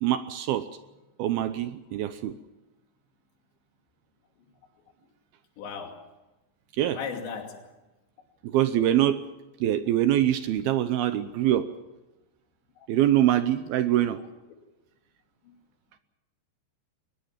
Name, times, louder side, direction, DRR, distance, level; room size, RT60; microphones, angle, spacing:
voice 1, 0.0-0.7 1.2-2.4 6.8-7.0 8.4-9.2 9.6-11.7 12.9-14.2, right 12 dB, 75° right, 11 dB, 2.4 m, -24 dB
voice 2, 5.6-6.1 6.9-7.7 12.8-12.9 14.0-14.2 15.4-15.6, left 6 dB, 80° left, 3 dB, 5.0 m, -37 dB
22.5 x 20.0 x 7.4 m, 1.1 s
omnidirectional pair, 5.1 m